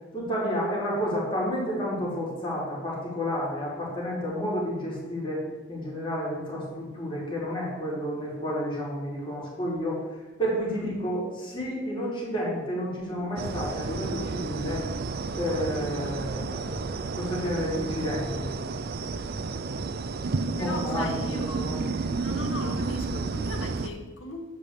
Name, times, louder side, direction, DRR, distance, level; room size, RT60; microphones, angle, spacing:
voice 1, 0.1-14.8 15.3-18.5 20.5-21.9, equal, 25° left, -5 dB, 3.1 m, -31 dB
sound 1, 13.4-23.9, right 3 dB, 50° right, 0.5 m, -31 dB
voice 2, 20.2-21.7 22.2-24.4, left 2 dB, 70° left, 4 dB, 1.3 m, -39 dB
7.9 x 5.2 x 6.5 m, 1.2 s
head